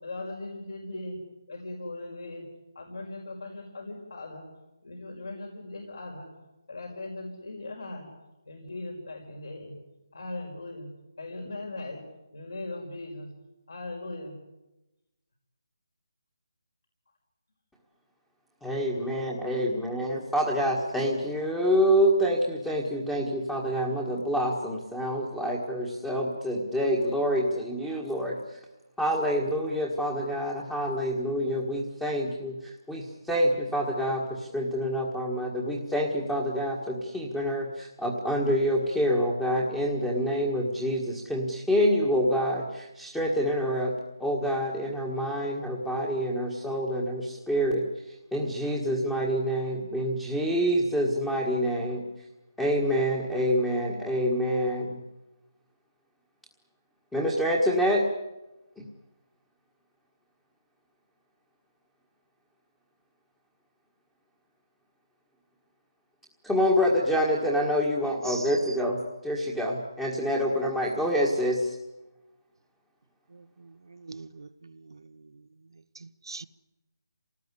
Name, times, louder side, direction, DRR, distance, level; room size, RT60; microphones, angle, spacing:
voice 1, 0.0-1.2 1.5-2.4 2.8-4.4 4.8-6.3 6.7-8.1 8.5-9.7 10.1-10.9 11.2-12.0 12.3-13.3 13.7-14.3 18.9-19.7, left 2 dB, 70° left, 5.3 m, -39 dB
voice 2, 18.6-28.4 29.0-32.6 32.9-43.9 44.2-47.9 48.3-52.0 52.6-55.0 57.1-58.0 58.8-58.9 66.4-71.8, equal, 5° left, 1.6 m, -27 dB
voice 3, 73.3-75.0 76.0-76.5, right 3 dB, 75° right, 1.1 m, -43 dB
26.5 x 19.0 x 9.8 m
hypercardioid pair, 170°, 2 cm